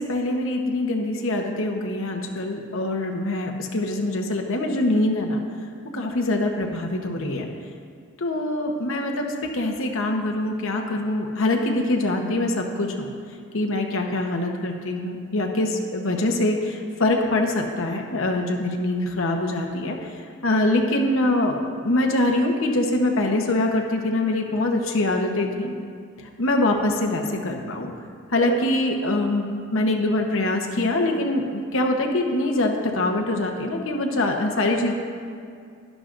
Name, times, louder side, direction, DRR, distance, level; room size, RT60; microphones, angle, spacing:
voice 1, 0.0-5.4 5.9-7.5 8.2-13.1 13.5-20.0 20.4-25.7 26.4-27.9 28.3-34.9, left 1 dB, 65° left, 2 dB, 1.0 m, -24 dB
11.5 x 11.5 x 2.6 m, 2.3 s
head